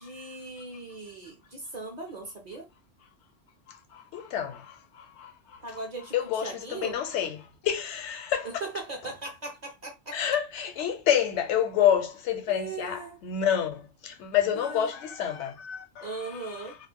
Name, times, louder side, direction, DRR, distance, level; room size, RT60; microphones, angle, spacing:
voice 1, 0.0-2.7 5.6-7.0 8.4-10.2 12.5-13.2 14.5-14.9 16.0-16.7, right 3 dB, 45° right, 0.6 m, -39 dB
voice 2, 3.7-5.6 6.1-8.5 10.1-16.7, left 9 dB, 75° left, 0.9 m, -29 dB
2.3 x 2.1 x 3.4 m
omnidirectional pair, 1.2 m